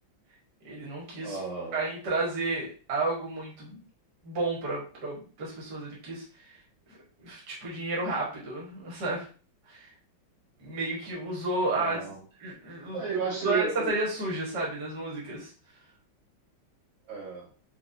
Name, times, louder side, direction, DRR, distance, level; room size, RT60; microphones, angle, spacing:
voice 1, 0.6-1.4 1.7-3.8 4.2-6.6 6.9-9.2 9.7-9.9 10.6-12.0 12.4-13.0 13.4-15.5, right 2 dB, 60° right, -4 dB, 1.8 m, -32 dB
voice 2, 1.2-1.8 11.7-12.2 12.9-14.0 17.1-17.5, right 5 dB, 85° right, -6 dB, 2.4 m, -33 dB
5.2 x 2.3 x 2.6 m, 0.39 s
omnidirectional pair, 2.1 m